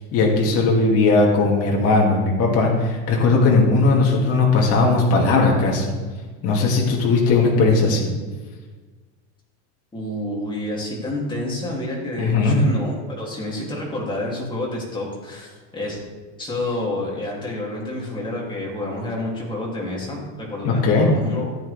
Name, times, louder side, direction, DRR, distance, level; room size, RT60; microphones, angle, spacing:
voice 1, 0.1-5.9 6.4-8.1 12.2-12.6 20.6-21.1, left 3 dB, 40° left, -2 dB, 2.5 m, -18 dB
voice 2, 9.9-16.0 16.4-21.5, left 1 dB, 15° left, -4 dB, 3.1 m, -29 dB
16.0 x 8.6 x 3.6 m, 1.4 s
supercardioid pair, 150°, 37 cm